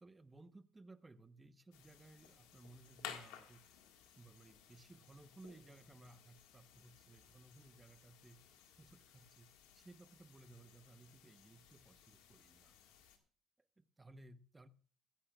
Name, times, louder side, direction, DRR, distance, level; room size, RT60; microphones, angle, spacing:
voice 1, 0.0-3.7 4.2-12.8 13.8-14.7, right 2 dB, 20° right, 1.0 m, -60 dB
sound 1, 1.7-13.2, left 9 dB, 90° left, 1.8 m, -57 dB
16.0 x 15.5 x 2.4 m
supercardioid pair, 80°, 0 cm